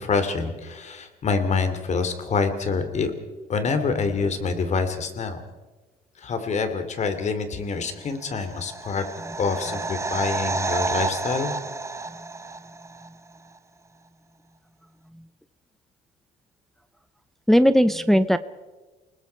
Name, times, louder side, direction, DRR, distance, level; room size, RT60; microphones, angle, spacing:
voice 1, 0.0-3.1 3.5-5.4 6.2-9.0 9.4-11.5, left 4 dB, 45° left, 9 dB, 2.8 m, -26 dB
sound 1, 8.2-13.1 13.4-13.5, right 3 dB, 15° right, 1.1 m, -30 dB
voice 2, 17.5-18.4, equal, ahead, 12 dB, 0.7 m, -18 dB
29.5 x 19.5 x 4.6 m, 1.2 s
cardioid pair, 110°, 17 cm